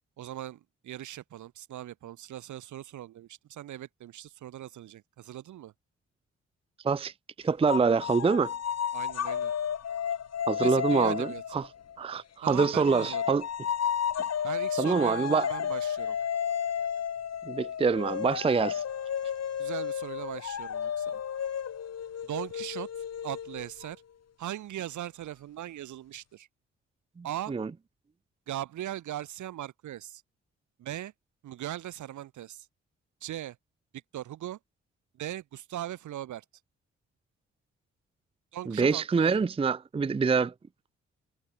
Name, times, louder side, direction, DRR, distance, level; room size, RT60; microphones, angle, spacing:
voice 1, 0.2-5.7 8.9-9.5 10.6-11.4 12.4-13.2 14.4-16.2 19.6-21.2 22.3-22.9 23.2-24.0 24.4-26.5 27.2-27.5 28.5-30.2 30.8-31.1 31.4-32.7 33.2-33.6 34.1-34.6 35.2-36.4 38.5-39.4, right 12 dB, 80° right, 4.1 m, -39 dB
voice 2, 7.4-8.5 10.5-11.7 12.0-13.4 14.8-15.5 17.5-18.8 27.2-27.7 38.7-40.5, right 5 dB, 20° right, 0.5 m, -26 dB
sound 1, 7.7-12.0 12.6-23.9, left 8 dB, 60° left, 2.1 m, -32 dB
supercardioid pair, 55°, 29 cm